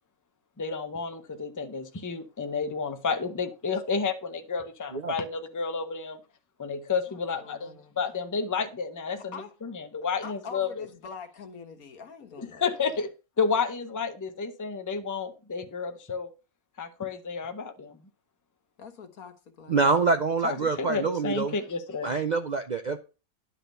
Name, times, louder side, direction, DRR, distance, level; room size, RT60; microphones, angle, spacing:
voice 1, 0.6-6.2 6.6-9.3 9.6-10.9 12.4-13.1 13.4-16.3 16.8-18.0 20.4-22.1, left 5 dB, 20° left, 0.5 m, -31 dB
voice 2, 7.1-7.9 9.3-9.5 10.2-12.6 18.8-19.8, left 5 dB, 85° left, 1.8 m, -44 dB
voice 3, 19.7-21.5 22.0-23.0, right 4 dB, 55° right, 0.5 m, -25 dB
10.5 x 4.3 x 6.5 m
omnidirectional pair, 1.5 m